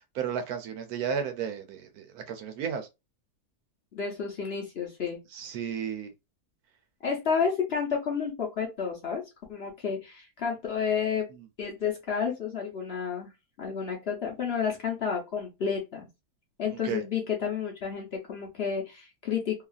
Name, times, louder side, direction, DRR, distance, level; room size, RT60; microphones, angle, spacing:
voice 1, 0.1-2.9 5.3-6.1 16.7-17.0, right 7 dB, 75° right, 1.1 m, -33 dB
voice 2, 3.9-5.2 7.0-9.2 9.5-11.3 11.6-13.3 13.6-16.1 16.6-19.7, left 6 dB, 50° left, 0.9 m, -30 dB
2.9 x 2.4 x 2.3 m
omnidirectional pair, 1.7 m